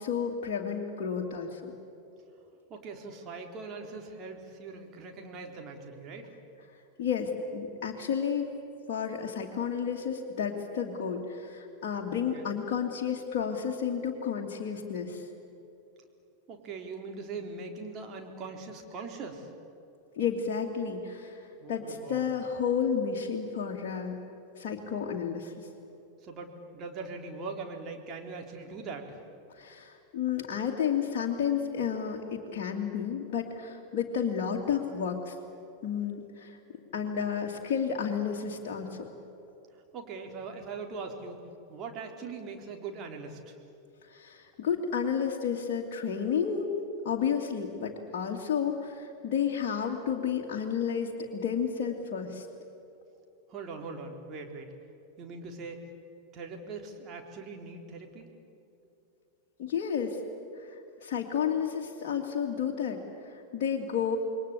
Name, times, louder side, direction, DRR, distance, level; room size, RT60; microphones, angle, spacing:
voice 1, 0.0-1.7 7.0-8.5 8.9-15.2 20.2-21.4 21.7-24.2 24.6-25.7 29.6-35.3 35.8-36.6 36.9-39.1 44.1-46.7 47.0-52.5 59.6-60.2 60.6-64.2, left 7 dB, 45° left, -1 dB, 2.4 m, -31 dB
voice 2, 2.7-6.3 12.1-12.5 16.5-19.5 21.6-22.3 26.2-29.2 39.9-41.4 41.7-43.6 53.5-54.7 55.2-55.9 56.3-58.3, right 4 dB, 30° right, 2 dB, 3.9 m, -41 dB
28.0 x 22.5 x 8.7 m, 2.9 s
figure-of-eight pair, 90°, 0 cm